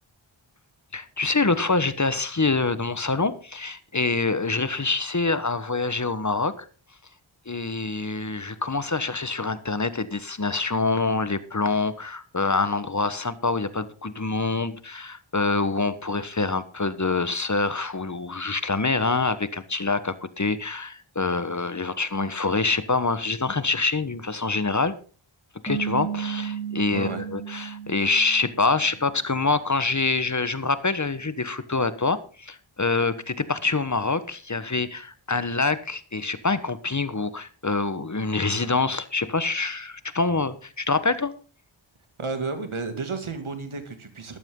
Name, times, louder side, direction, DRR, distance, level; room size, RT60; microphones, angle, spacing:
voice 1, 0.9-6.7 7.5-24.9 25.6-41.3, left 3 dB, 35° left, 13 dB, 1.2 m, -26 dB
sound 1, 25.7-29.0, right 8 dB, 15° left, 7.2 m, -33 dB
voice 2, 26.9-27.2 42.2-44.4, right 4 dB, 85° right, 7 dB, 2.4 m, -32 dB
13.5 x 12.5 x 3.8 m, 0.38 s
wide cardioid pair, 45°, 48 cm